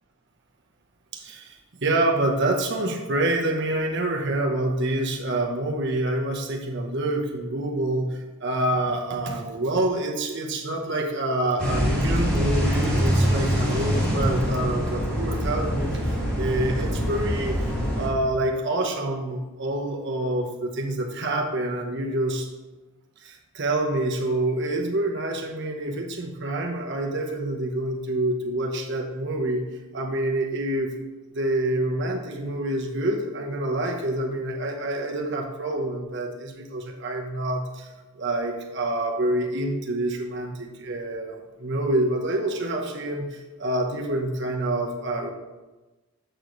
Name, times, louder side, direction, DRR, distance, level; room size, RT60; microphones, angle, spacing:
voice 1, 1.1-22.5 23.2-29.6 29.9-30.9 31.3-37.9 38.1-45.3, right 1 dB, 50° right, 1 dB, 0.9 m, -27 dB
sound 1, 11.6-18.1, equal, 5° left, 1.7 m, -24 dB
7.7 x 4.8 x 3.9 m, 1.2 s
head